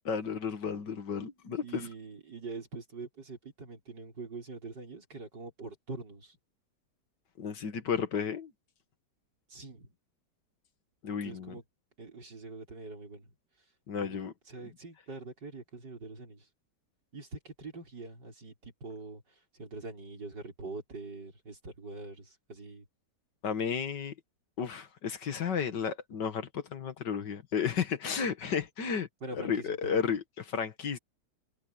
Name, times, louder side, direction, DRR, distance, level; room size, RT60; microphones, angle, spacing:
voice 1, 0.1-1.9 7.4-8.5 11.0-11.5 13.9-14.3 23.4-24.1 24.6-29.1 29.3-31.0, left 7 dB, 80° left, 2.3 m, -33 dB
voice 2, 1.6-6.4 9.5-10.0 11.2-11.6 12.0-13.3 13.9-14.2 14.5-16.5 17.1-19.2 19.5-22.9 29.2-30.0, right 3 dB, 80° right, 5.9 m, -44 dB
omnidirectional pair, 1.9 m